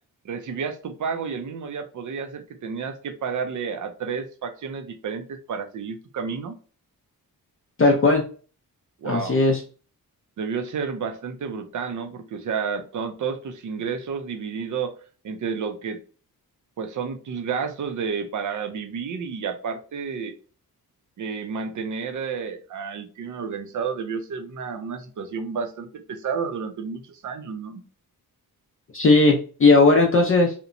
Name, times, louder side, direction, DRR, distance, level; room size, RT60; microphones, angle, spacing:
voice 1, 0.2-6.6 9.0-9.4 10.4-14.9 15.2-16.0 16.8-20.3 21.2-27.8, right 6 dB, 55° right, 9 dB, 0.4 m, -31 dB
voice 2, 7.8-8.2 9.0-9.6 28.9-30.5, left 3 dB, 35° left, 0 dB, 0.4 m, -17 dB
2.8 x 2.1 x 2.5 m, 0.38 s
wide cardioid pair, 155°, 37 cm